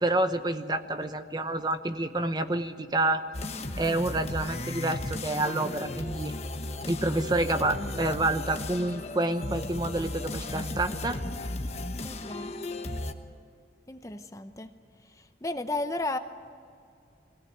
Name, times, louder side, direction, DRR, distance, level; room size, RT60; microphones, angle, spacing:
voice 1, 0.0-3.2 3.8-6.4 6.8-11.2, right 2 dB, 25° right, 9 dB, 0.8 m, -28 dB
sound 1, 3.3-13.1, left 2 dB, 35° left, 1.1 m, -35 dB
voice 2, 12.0-12.5 13.9-14.7 15.1-16.2, left 2 dB, 20° left, 9 dB, 0.7 m, -34 dB
21.5 x 17.5 x 9.2 m, 2.3 s
head